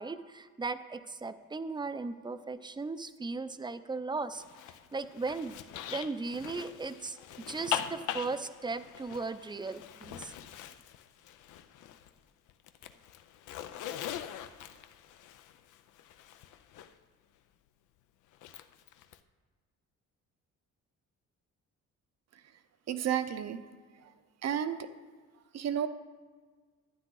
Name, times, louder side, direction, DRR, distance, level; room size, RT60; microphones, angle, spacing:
voice 1, 0.0-4.4 4.9-5.6 5.9-7.2 7.5-10.3, right 3 dB, 15° right, 12 dB, 0.5 m, -37 dB
Zipper (clothing), 4.3-12.2 12.5-16.9 18.3-19.2, left 11 dB, 80° left, 0.6 m, -42 dB
voice 2, 22.9-23.6 24.4-24.8 25.5-25.9, right 9 dB, 60° right, 11 dB, 0.7 m, -31 dB
12.0 x 9.7 x 3.9 m, 1.5 s
cardioid pair, 90°, 30 cm